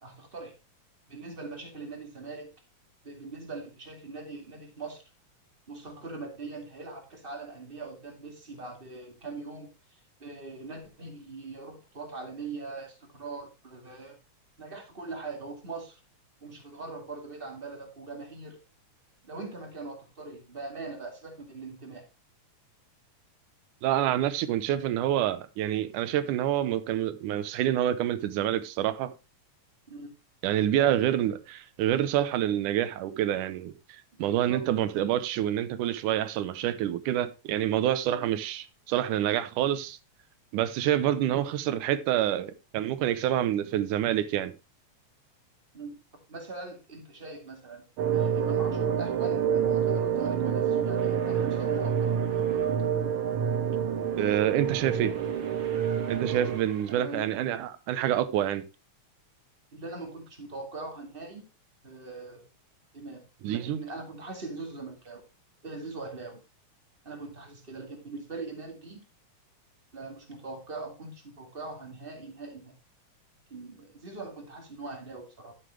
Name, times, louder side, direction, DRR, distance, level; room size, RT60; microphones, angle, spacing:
voice 1, 0.0-0.6 1.1-2.5 3.0-5.0 5.7-14.2 14.6-16.0 16.4-18.6 19.2-22.1 29.9-30.1 34.2-34.6 38.2-38.3 40.9-41.1 45.7-46.0 46.3-47.9 48.1-52.7 56.9-57.3 59.7-61.4 61.8-62.5 62.9-63.2 63.5-65.2 65.6-66.4 67.0-69.0 69.9-72.7 73.5-75.5, right 3 dB, 20° right, 2.2 m, -41 dB
voice 2, 23.8-29.1 30.4-40.0 40.5-44.5 54.1-55.1 56.1-58.6 63.4-63.8, right 11 dB, 90° right, 2.4 m, -27 dB
sound 1, 48.0-56.6, right 8 dB, 70° right, 2.5 m, -27 dB
sound 2, 51.0-52.8 53.8-57.2, right 4 dB, 45° right, 2.4 m, -49 dB
11.5 x 8.9 x 3.2 m
omnidirectional pair, 3.5 m